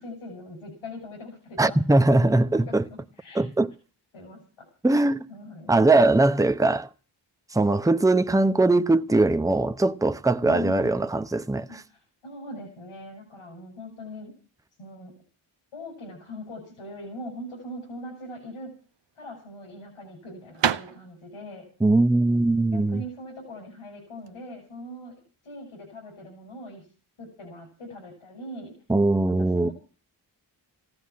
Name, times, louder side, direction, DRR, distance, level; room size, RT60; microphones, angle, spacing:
voice 1, 0.0-3.4 4.1-4.7 5.3-5.8 10.4-11.0 11.7-14.3 14.8-15.1 15.7-18.7 19.1-21.6 22.7-26.9 27.2-28.7 29.3-29.7, left 1 dB, 90° left, 6.4 m, -41 dB
voice 2, 1.6-2.8 3.3-3.7 4.8-5.3 5.7-6.9 7.5-11.7 21.8-23.0 28.9-29.7, right 2 dB, 5° right, 0.8 m, -21 dB
sound 1, 18.7-24.4, right 8 dB, 60° right, 0.9 m, -32 dB
15.5 x 9.8 x 8.4 m
cardioid pair, 50°, 49 cm